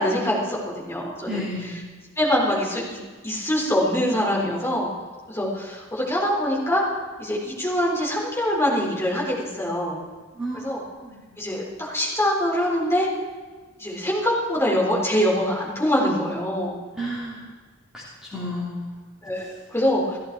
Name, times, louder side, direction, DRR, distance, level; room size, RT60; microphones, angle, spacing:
voice 1, 0.0-1.4 2.2-4.9 5.3-6.8 7.2-10.0 10.6-10.8 11.4-13.1 13.8-16.8 19.2-20.2, equal, 15° left, -4 dB, 3.9 m, -24 dB
voice 2, 1.2-1.8 10.3-11.3 16.9-17.5 17.9-19.0, equal, 5° right, -7 dB, 3.0 m, -32 dB
15.5 x 15.0 x 4.8 m, 1.4 s
head